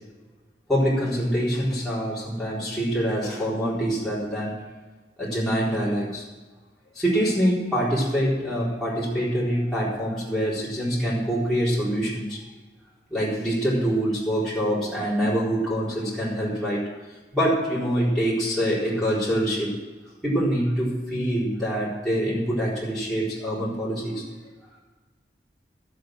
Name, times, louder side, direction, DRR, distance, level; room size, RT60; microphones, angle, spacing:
voice 1, 0.7-4.6 5.2-6.3 6.9-12.4 13.1-16.9 17.3-19.8 20.2-24.2, equal, ahead, -10 dB, 4.3 m, -25 dB
13.0 x 7.9 x 7.8 m, 1.3 s
head